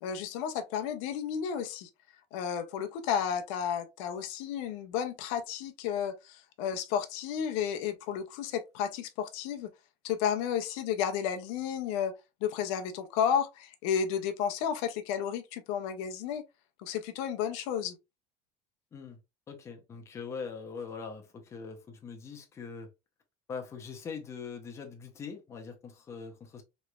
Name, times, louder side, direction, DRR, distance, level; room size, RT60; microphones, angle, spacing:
voice 1, 0.0-1.9 2.3-9.7 10.0-12.1 12.4-16.4 16.8-18.0, left 8 dB, 75° left, 0.5 m, -32 dB
voice 2, 19.5-22.9 23.5-26.6, left 5 dB, 20° left, 0.6 m, -42 dB
3.0 x 3.0 x 2.2 m
cardioid pair, 175°, 16 cm